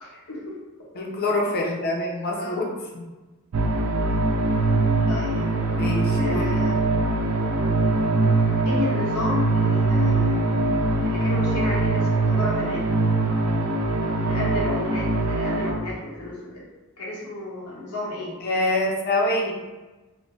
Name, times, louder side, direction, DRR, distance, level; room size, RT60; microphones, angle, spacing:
voice 1, 0.0-0.6 2.4-2.6 5.0-5.5 6.2-7.0 8.6-10.6 11.0-12.9 14.2-16.6 17.0-18.4, left 2 dB, 90° left, -5 dB, 0.9 m, -33 dB
voice 2, 0.9-2.7 2.9-3.0 5.7-6.6 18.4-19.5, left 1 dB, 45° left, -1 dB, 0.5 m, -25 dB
sound 1, 3.5-15.7, right 2 dB, 85° right, 0.4 m, -22 dB
3.3 x 2.1 x 2.5 m, 1.2 s
head